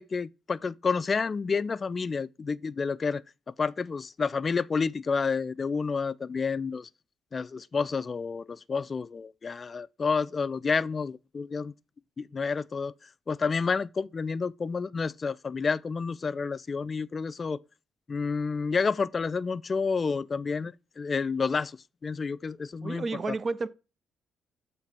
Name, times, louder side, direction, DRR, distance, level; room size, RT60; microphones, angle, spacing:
voice 1, 0.0-3.2 3.6-6.9 7.3-11.7 12.2-12.9 13.3-17.6 18.1-21.8 22.0-23.0, left 5 dB, 35° left, 0.3 m, -29 dB
voice 2, 22.8-23.7, right 3 dB, 40° right, 0.5 m, -31 dB
7.6 x 3.3 x 4.3 m
cardioid pair, 90°, 0 cm